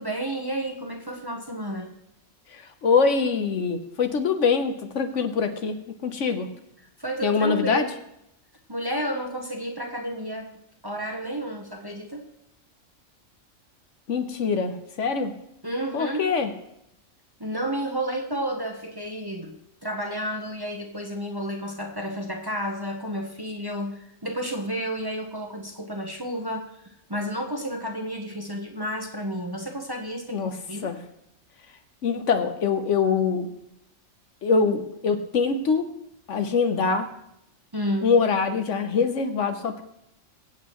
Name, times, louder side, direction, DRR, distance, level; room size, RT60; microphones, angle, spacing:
voice 1, 0.0-1.9 7.0-7.9 8.7-10.5 10.8-12.2 15.6-16.3 17.4-19.5 19.8-30.9 37.7-38.2, equal, 20° right, 1 dB, 0.9 m, -31 dB
voice 2, 2.5-6.5 7.2-7.9 14.1-15.3 15.9-16.5 30.3-31.0 32.0-33.5 34.4-35.9 36.3-37.1 38.0-39.8, left 5 dB, 70° left, 8 dB, 1.3 m, -24 dB
23.0 x 8.3 x 3.1 m, 0.81 s
omnidirectional pair, 1.3 m